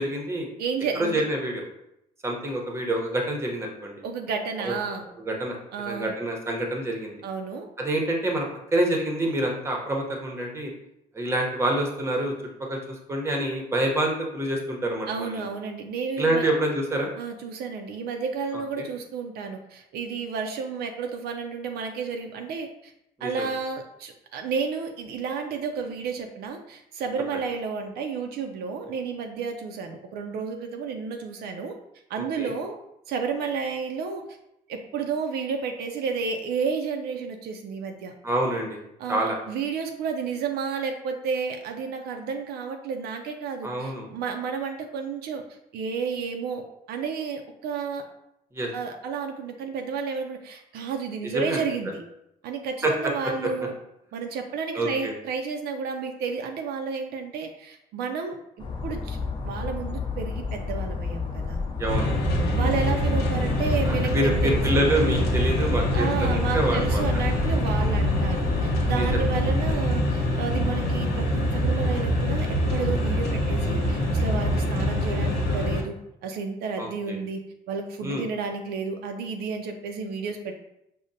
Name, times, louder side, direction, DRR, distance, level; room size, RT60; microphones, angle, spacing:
voice 1, 0.0-0.5 1.0-1.6 2.2-4.0 4.6-4.7 5.3-5.6 5.9-7.2 7.8-8.5 8.7-10.7 11.1-12.3 12.7-15.4 16.2-17.1 18.8-18.9 23.2-23.5 32.4-32.5 38.2-38.8 39.1-39.4 43.6-44.1 48.5-48.7 51.2-51.9 52.8-53.1 54.7-55.1 61.8-62.2 63.9-67.0 68.9-69.1 76.8-77.2 78.0-78.3, right 1 dB, 15° right, 1 dB, 0.7 m, -27 dB
voice 2, 0.6-1.2 4.0-5.1 5.7-6.1 7.2-7.7 15.1-16.5 17.2-22.9 23.2-31.8 32.1-32.8 33.1-34.2 34.7-38.1 39.0-45.4 45.7-46.6 46.9-48.0 48.7-52.0 52.4-53.7 54.1-58.4 58.8-59.2 59.4-61.6 62.5-64.8 65.9-75.9 76.2-80.5, right 5 dB, 70° right, 4 dB, 0.4 m, -31 dB
sound 1, 58.6-69.8, left 4 dB, 30° left, 0.5 m, -32 dB
sound 2, 61.9-75.8, equal, 90° left, 0.9 m, -25 dB
5.0 x 2.0 x 2.6 m, 0.81 s
cardioid pair, 110°, 17 cm